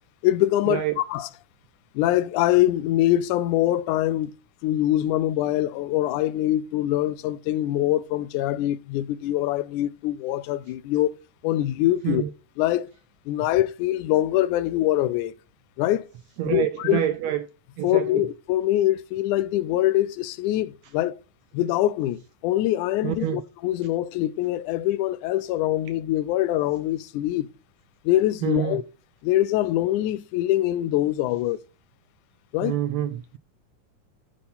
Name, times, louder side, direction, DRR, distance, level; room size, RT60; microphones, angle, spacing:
voice 1, 0.2-1.3 2.0-4.3 4.6-11.1 11.4-12.2 12.6-12.9 13.3-15.3 15.8-16.1 16.4-17.0 17.8-21.2 21.5-27.5 28.1-28.8 29.2-31.6 32.5-32.8, left 14 dB, 85° left, 2.0 m, -24 dB
voice 2, 16.4-17.4 17.8-18.0 23.0-23.4 28.4-28.8 32.6-33.4, right 11 dB, 85° right, 1.5 m, -26 dB
9.8 x 4.4 x 5.5 m
omnidirectional pair, 3.5 m